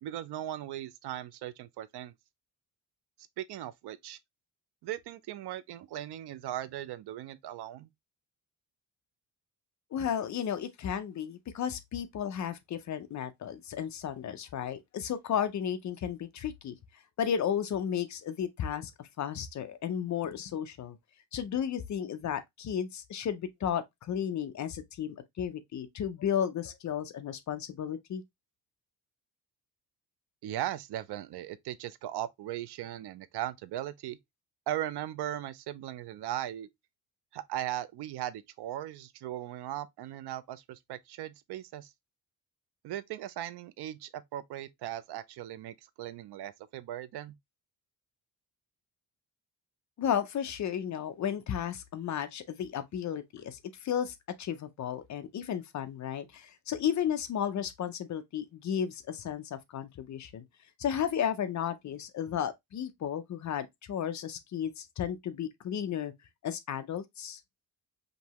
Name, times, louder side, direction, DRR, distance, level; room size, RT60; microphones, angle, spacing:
voice 1, 0.0-2.1 3.4-4.2 4.8-7.9 30.4-34.2 34.7-36.7 37.3-41.9 42.8-47.3, right 12 dB, 75° right, 0.6 m, -38 dB
voice 2, 9.9-16.7 17.2-18.9 19.2-21.0 21.3-28.2 50.0-60.4 60.8-66.1 66.4-67.4, left 9 dB, 45° left, 0.6 m, -33 dB
5.2 x 2.8 x 2.9 m
cardioid pair, 170°, 39 cm